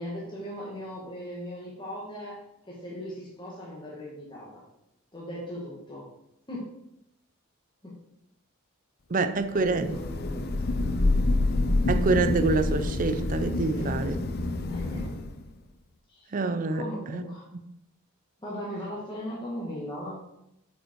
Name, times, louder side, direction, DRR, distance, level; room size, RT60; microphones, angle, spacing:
voice 1, 0.0-4.6 5.1-6.1 6.5-6.7 7.8-8.0 9.5-10.7 11.0-11.2 13.5-13.9 14.7-15.2 16.1-16.3 16.7-17.5 18.4-20.2, equal, 20° left, 1.7 m, -38 dB
voice 2, 9.1-10.0 11.9-14.2 16.3-16.8 17.1-17.2, right 3 dB, 40° right, 0.5 m, -26 dB
Thunder / Rain, 9.7-15.4, left 2 dB, 50° left, 0.6 m, -27 dB
8.1 x 5.3 x 4.5 m
head